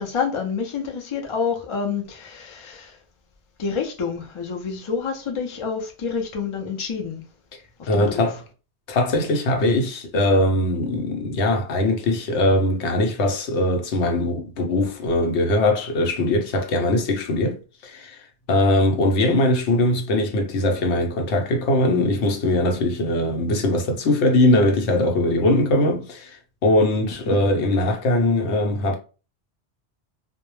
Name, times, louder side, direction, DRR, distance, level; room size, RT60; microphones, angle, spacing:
voice 1, 0.0-3.0 3.6-7.2 7.8-8.3 27.3-27.4, left 5 dB, 45° left, 0.4 m, -28 dB
voice 2, 7.9-8.4 8.9-29.0, left 1 dB, 75° left, 0.9 m, -21 dB
2.1 x 2.1 x 3.0 m
omnidirectional pair, 1.2 m